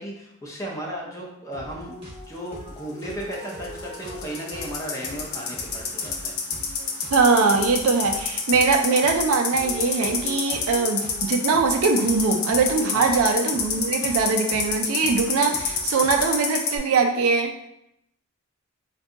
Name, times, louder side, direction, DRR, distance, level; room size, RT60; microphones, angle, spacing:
voice 1, 0.0-2.0 2.3-6.4 12.9-13.2, equal, 15° left, -2 dB, 0.6 m, -35 dB
sound 1, 1.5-16.4, equal, 25° right, 0.8 m, -42 dB
sound 2, 3.3-16.8, left 6 dB, 75° left, 0.5 m, -27 dB
voice 2, 7.1-17.5, right 4 dB, 70° right, 4 dB, 0.4 m, -22 dB
2.7 x 2.2 x 3.7 m, 0.80 s
head